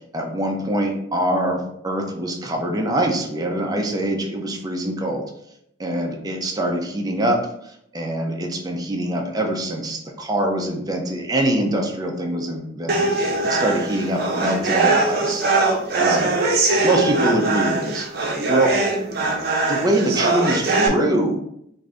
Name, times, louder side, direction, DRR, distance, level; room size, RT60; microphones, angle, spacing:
voice 1, 0.1-5.2 5.8-7.5 7.9-15.5 16.0-16.3 16.8-18.8 19.7-21.4, right 1 dB, 20° right, 1 dB, 0.6 m, -24 dB
sound 1, 12.9-20.9, right 3 dB, 55° right, 0.7 m, -21 dB
3.7 x 2.6 x 3.3 m, 0.73 s
head